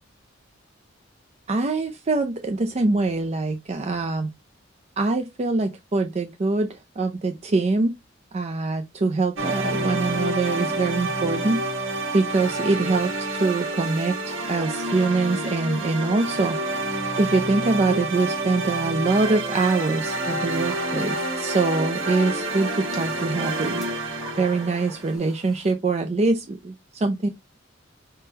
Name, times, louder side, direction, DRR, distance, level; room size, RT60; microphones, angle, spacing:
voice 1, 1.5-4.3 5.0-7.9 8.3-11.6 12.1-16.6 17.2-22.7 23.0-23.9 24.4-27.3, right 3 dB, 35° right, 0.5 m, -24 dB
sound 1, 9.4-25.1, right 2 dB, 90° right, 1.5 m, -28 dB
sound 2, 20.6-25.7, right 1 dB, ahead, 2.1 m, -46 dB
5.4 x 3.6 x 2.8 m
head